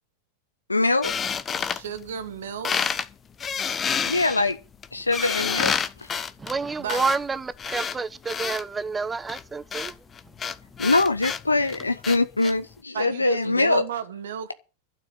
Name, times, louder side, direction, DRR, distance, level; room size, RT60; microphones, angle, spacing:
voice 1, 0.7-1.1 4.0-4.6 4.9-5.7 10.8-13.8, left 3 dB, 80° left, 0.9 m, -22 dB
sound 1, 1.0-2.4 2.6-3.1 3.4-8.6 9.3-12.5, left 6 dB, 20° left, 1.0 m, -29 dB
voice 2, 1.6-2.8 6.8-7.0 12.9-14.5, right 8 dB, 60° right, 1.7 m, -33 dB
voice 3, 6.4-9.9, right 4 dB, 15° right, 1.0 m, -29 dB
12.5 x 7.0 x 8.9 m
figure-of-eight pair, 90°, 0 cm